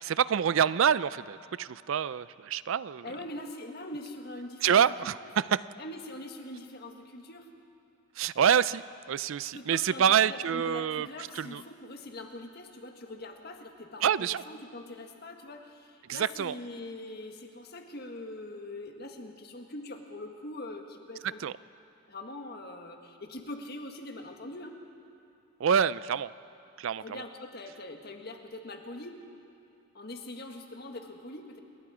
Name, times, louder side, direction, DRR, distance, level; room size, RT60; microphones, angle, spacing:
voice 1, 0.0-3.1 4.6-5.6 8.2-11.1 11.3-11.6 14.0-14.4 16.1-16.5 21.4-21.5 25.6-26.3 26.8-27.0, right 8 dB, 65° right, 17 dB, 0.4 m, -26 dB
voice 2, 3.0-4.8 5.2-5.3 5.8-7.5 9.5-21.5 22.1-24.8 27.0-29.3 29.9-31.6, left 1 dB, 45° left, 4 dB, 1.7 m, -43 dB
28.0 x 21.0 x 5.0 m, 2.6 s
head